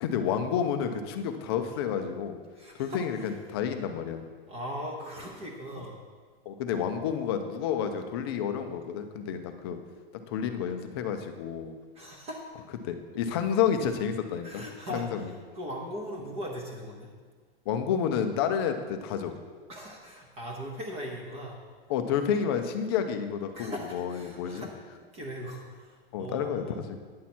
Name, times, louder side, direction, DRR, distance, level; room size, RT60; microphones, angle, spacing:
voice 1, 0.0-2.4 2.7-4.2 6.5-9.8 10.3-11.7 12.8-14.6 14.9-15.3 17.7-19.3 21.9-24.7 26.1-27.0, left 8 dB, 25° left, 7 dB, 0.4 m, -30 dB
voice 2, 2.6-3.0 4.5-6.0 11.9-12.4 14.4-15.3 15.5-17.1 19.7-21.6 23.5-24.7 25.1-26.8, equal, 20° right, 0 dB, 0.9 m, -39 dB
9.4 x 7.3 x 4.3 m, 1.5 s
supercardioid pair, 170°, 32 cm